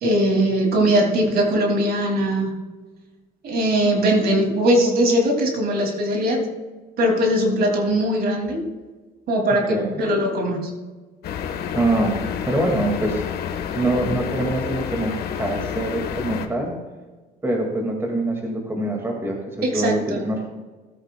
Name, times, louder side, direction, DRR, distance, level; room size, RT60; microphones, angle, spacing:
voice 1, 0.0-2.5 3.4-6.4 7.0-8.6 9.3-10.7 19.6-20.3, equal, 65° right, 2 dB, 2.6 m, -20 dB
sound 1, 11.2-16.5, left 8 dB, 65° left, 1.2 m, -29 dB
voice 2, 11.7-13.3 13.7-16.7 17.4-20.4, right 1 dB, 15° right, 0 dB, 2.0 m, -24 dB
17.0 x 9.1 x 2.3 m, 1.3 s
cardioid pair, 110°, 17 cm